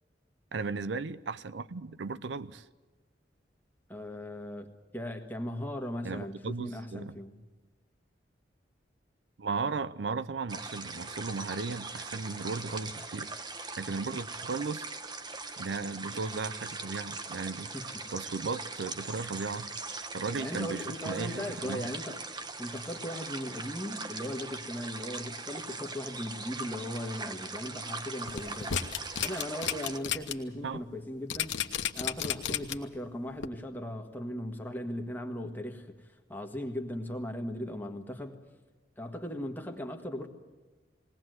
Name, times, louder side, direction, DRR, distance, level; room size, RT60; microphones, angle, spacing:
voice 1, 0.5-2.6 6.0-7.1 9.4-13.3 13.8-14.9 15.6-17.7 18.1-19.7 20.1-21.9 30.6-30.8, right 4 dB, 80° right, 16 dB, 0.6 m, -36 dB
voice 2, 3.9-7.5 17.7-17.9 20.4-22.2 22.6-28.8 29.2-31.6 31.9-35.9 36.3-38.4 39.0-40.3, left 1 dB, 10° left, 3 dB, 1.6 m, -38 dB
sound 1, 10.5-30.0, right 3 dB, 25° right, 1.0 m, -41 dB
sound 2, 28.3-30.3 30.7-30.8 31.3-33.0 33.4-33.5, left 9 dB, 90° left, 1.1 m, -32 dB
20.0 x 18.5 x 7.9 m, 1.2 s
head